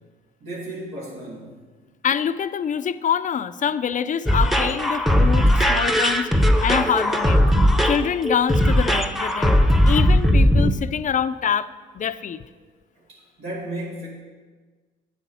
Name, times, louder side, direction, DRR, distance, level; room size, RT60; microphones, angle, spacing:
voice 1, 0.4-1.5 5.5-5.6 13.0-14.1, right 1 dB, 85° right, -6 dB, 2.7 m, -34 dB
voice 2, 2.0-6.3 6.6-7.5 7.8-9.5 9.8-11.7 11.9-12.4, left 8 dB, 40° left, 13 dB, 0.5 m, -25 dB
sound 1, 4.3-10.7, equal, ahead, 0.8 m, -18 dB
8.4 x 8.2 x 5.6 m, 1.4 s
cardioid pair, 90°, 20 cm